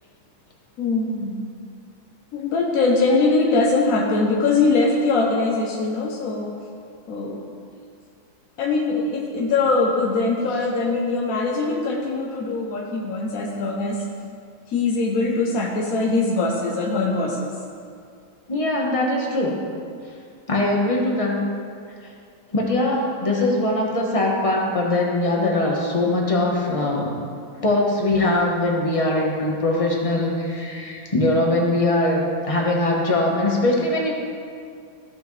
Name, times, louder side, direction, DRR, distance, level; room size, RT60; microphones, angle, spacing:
voice 1, 0.8-1.5 2.3-6.5 7.1-7.4 8.6-14.0 14.7-17.5, left 3 dB, 60° left, -1 dB, 0.9 m, -22 dB
voice 2, 18.5-19.6 20.5-21.4 22.5-27.1 27.6-34.1, left 2 dB, 25° left, -2 dB, 0.8 m, -21 dB
14.0 x 6.1 x 3.2 m, 2.3 s
omnidirectional pair, 2.2 m